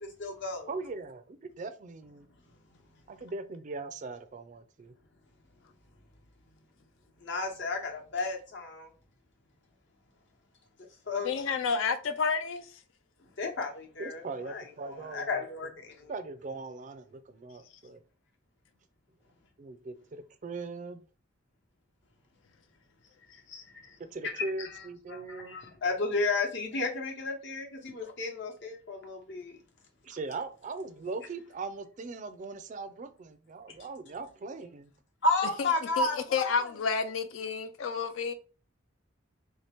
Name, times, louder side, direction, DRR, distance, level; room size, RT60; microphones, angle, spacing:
voice 1, 0.0-0.7 7.2-8.9 11.1-11.3 13.4-16.1 23.5-23.8 24.2-24.8 25.1-29.6 35.2-36.5, left 3 dB, 60° left, 0.9 m, -33 dB
voice 2, 0.7-2.3 3.1-4.9 14.0-15.4 16.1-18.0 19.6-21.0 24.1-25.6 30.0-34.9, right 3 dB, 40° right, 0.3 m, -40 dB
voice 3, 11.2-12.8 35.6-35.7 36.0-38.3, left 5 dB, 75° left, 0.4 m, -30 dB
3.2 x 2.8 x 3.4 m
head